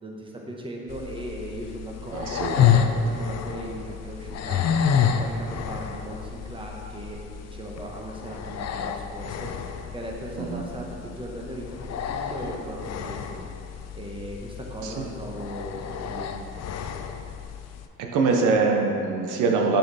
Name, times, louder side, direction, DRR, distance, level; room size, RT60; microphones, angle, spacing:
voice 1, 0.0-4.6 5.2-9.5 9.9-13.5 13.9-16.5, right 1 dB, 15° right, -1 dB, 1.1 m, -38 dB
sound 1, 0.9-17.9, left 7 dB, 60° left, 0.5 m, -29 dB
voice 2, 2.1-2.9 10.4-10.6 14.8-15.0 18.0-19.8, right 4 dB, 85° right, 2 dB, 0.8 m, -24 dB
6.5 x 5.7 x 4.2 m, 2.7 s
cardioid pair, 90°, 30 cm